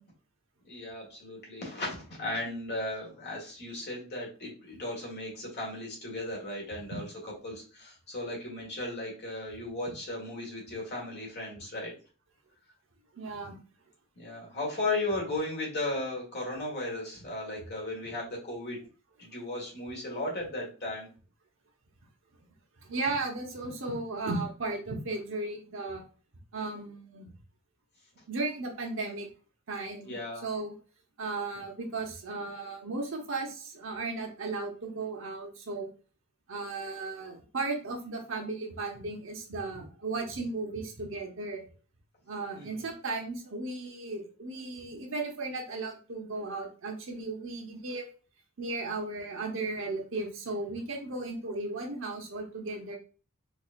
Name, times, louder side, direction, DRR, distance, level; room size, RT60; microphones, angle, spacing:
voice 1, 0.6-7.0 7.4-11.9 14.2-18.8 19.2-21.1 30.0-30.5 42.5-42.9, left 2 dB, 50° left, -2 dB, 1.5 m, -36 dB
voice 2, 13.1-13.6 22.8-26.0 26.5-27.3 28.3-29.3 29.7-30.1 30.4-30.7 31.2-35.9 36.5-41.6 42.3-48.0 48.6-53.0, right 3 dB, 60° right, 1 dB, 0.9 m, -35 dB
4.3 x 2.7 x 2.5 m, 0.37 s
head